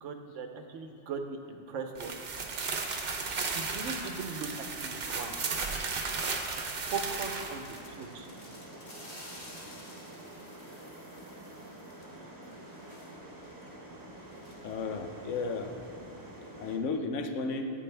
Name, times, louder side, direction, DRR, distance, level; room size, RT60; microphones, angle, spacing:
voice 1, 0.0-2.2 3.4-4.5 4.8-5.3 6.4-8.3, right 5 dB, 85° right, 5 dB, 1.1 m, -39 dB
Finding in papers, 1.9-7.8, right 4 dB, 55° right, 0.9 m, -35 dB
sound 1, 4.6-15.3, left 1 dB, 30° left, 1.6 m, -54 dB
sound 2, 7.7-16.8, right 1 dB, 20° right, 1.0 m, -48 dB
voice 2, 14.6-15.7 16.6-17.7, left 4 dB, 85° left, 6 dB, 1.1 m, -33 dB
11.0 x 8.8 x 3.3 m, 2.9 s
omnidirectional pair, 1.2 m